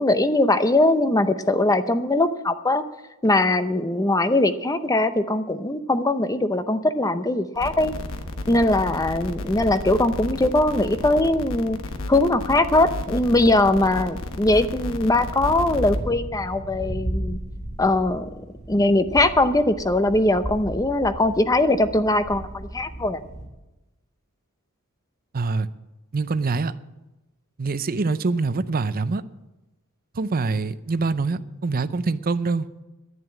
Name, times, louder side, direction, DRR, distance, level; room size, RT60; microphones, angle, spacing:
voice 1, 0.0-2.8 3.2-7.9 8.5-11.8 12.1-17.4 17.8-23.2, left 2 dB, 15° left, 11 dB, 0.7 m, -21 dB
sound 1, 7.6-16.0, left 2 dB, 65° left, 1.2 m, -33 dB
sound 2, 15.4-23.4, right 1 dB, 35° left, 5.6 m, -34 dB
voice 2, 25.3-25.7 26.1-26.7 27.6-29.2 30.1-32.7, right 3 dB, 40° right, 13 dB, 0.6 m, -24 dB
11.0 x 9.3 x 8.6 m, 1.0 s
head